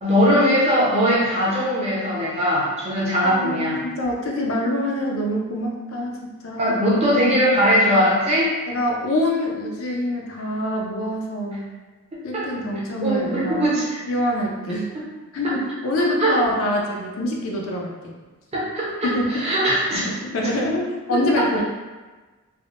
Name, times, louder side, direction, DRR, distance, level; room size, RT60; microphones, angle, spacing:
voice 1, 0.0-3.8 6.6-8.5 12.1-12.4 13.0-14.0 15.4-15.6 16.2-16.4 18.5-20.1 21.1-21.4, equal, 30° right, -6 dB, 0.6 m, -20 dB
voice 2, 3.2-6.8 8.7-11.7 12.2-13.7 14.1-14.9 15.3-17.9 19.0-19.4 19.9-21.6, left 1 dB, 65° left, -1 dB, 0.4 m, -25 dB
3.4 x 2.0 x 2.4 m, 1.3 s
head